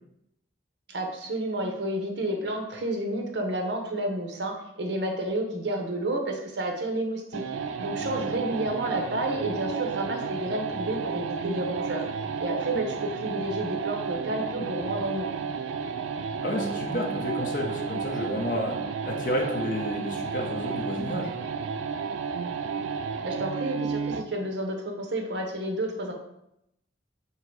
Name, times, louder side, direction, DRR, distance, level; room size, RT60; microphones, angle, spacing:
voice 1, 0.9-7.4 7.8-12.1 12.4-15.3 23.2-26.1, right 1 dB, 65° right, 2 dB, 0.8 m, -30 dB
sound 1, 7.3-24.3, right 5 dB, 90° right, 0.3 m, -32 dB
voice 2, 16.4-21.4, left 1 dB, 45° left, 0 dB, 0.8 m, -31 dB
3.8 x 3.0 x 4.5 m, 0.81 s
head